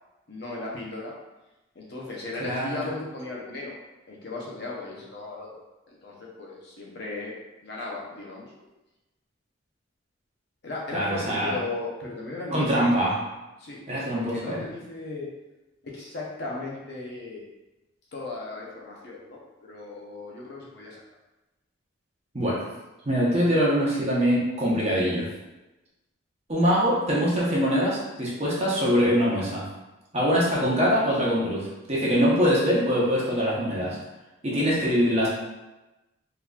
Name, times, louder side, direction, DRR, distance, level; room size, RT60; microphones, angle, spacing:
voice 1, 0.3-1.1 1.8-3.7 4.1-5.6 5.9-7.3 7.6-8.5 10.6-13.0 13.6-13.8 14.1-15.3 15.8-17.4 18.1-21.0 34.5-34.6, left 2 dB, 55° left, -3 dB, 0.7 m, -36 dB
voice 2, 2.4-2.8 10.9-11.5 12.5-13.2 13.9-14.6 22.3-22.6 23.0-25.3 26.5-29.6 30.1-34.0 34.4-35.3, equal, 30° right, -6 dB, 0.8 m, -23 dB
3.8 x 3.0 x 2.3 m, 1.0 s
head